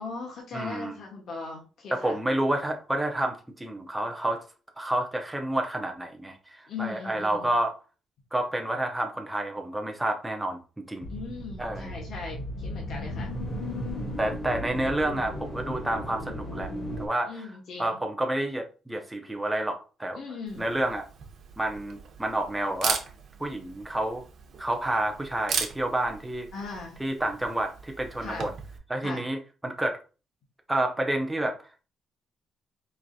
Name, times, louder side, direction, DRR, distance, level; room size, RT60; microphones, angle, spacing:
voice 1, 0.0-2.2 6.7-7.5 11.1-13.3 17.3-18.0 20.2-20.7 26.5-27.0 28.2-28.5 29.0-29.2, left 4 dB, 50° left, 1.1 m, -39 dB
voice 2, 0.5-1.0 1.9-4.4 4.8-7.8 8.3-10.6 10.9-11.1 11.6-11.9 14.2-16.7 17.0-17.5 17.8-20.2 20.6-21.0 21.6-23.0 23.4-24.2 24.6-26.5 27.0-28.5 28.9-30.0 30.7-31.6, right 1 dB, 5° right, 0.5 m, -29 dB
sound 1, 11.0-17.1, left 1 dB, 25° left, 0.9 m, -35 dB
Camera, 20.5-28.8, right 6 dB, 50° right, 0.7 m, -37 dB
4.6 x 3.1 x 2.6 m
cardioid pair, 175°, 0 cm